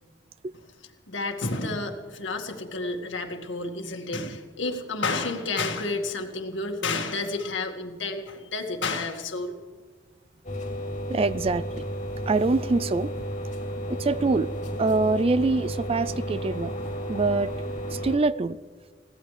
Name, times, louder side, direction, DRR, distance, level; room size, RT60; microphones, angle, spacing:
voice 1, 1.1-9.5, left 3 dB, 75° left, 4 dB, 1.9 m, -30 dB
sound 1, 10.4-18.2, equal, 40° left, 2.7 m, -32 dB
voice 2, 11.1-11.8 12.2-13.2 13.9-14.5 14.8-16.7 17.1-17.5 17.9-18.6, right 3 dB, 30° right, 17 dB, 0.3 m, -24 dB
21.5 x 17.0 x 3.3 m, 1.5 s
head